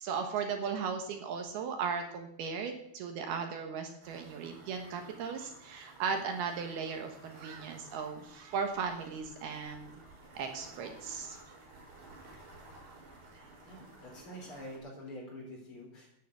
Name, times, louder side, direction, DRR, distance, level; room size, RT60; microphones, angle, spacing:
voice 1, 0.0-9.9 10.3-11.4 12.8-13.0, right 6 dB, 70° right, 5 dB, 3.1 m, -37 dB
sound 1, 4.0-14.8, right 2 dB, 90° right, 6.4 m, -54 dB
voice 2, 13.7-16.1, equal, 30° left, -1 dB, 4.6 m, -46 dB
12.0 x 9.5 x 8.0 m, 0.77 s
omnidirectional pair, 4.8 m